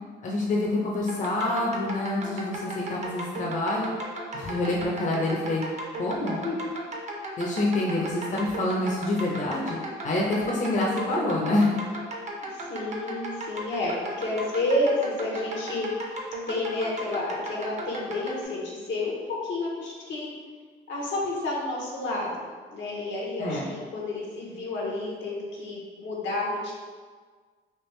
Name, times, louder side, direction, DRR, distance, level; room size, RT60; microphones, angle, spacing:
voice 1, 0.2-3.9 4.3-5.6 6.0-6.5 7.4-9.8 10.0-11.7 23.4-23.7, left 2 dB, 40° left, -3 dB, 0.6 m, -27 dB
sound 1, 1.1-18.4, right 1 dB, 35° right, 0.6 m, -36 dB
voice 2, 12.5-16.2 16.5-20.3 20.9-26.7, left 2 dB, 70° left, -3 dB, 0.9 m, -30 dB
3.4 x 2.5 x 3.1 m, 1.5 s
cardioid pair, 90°, 20 cm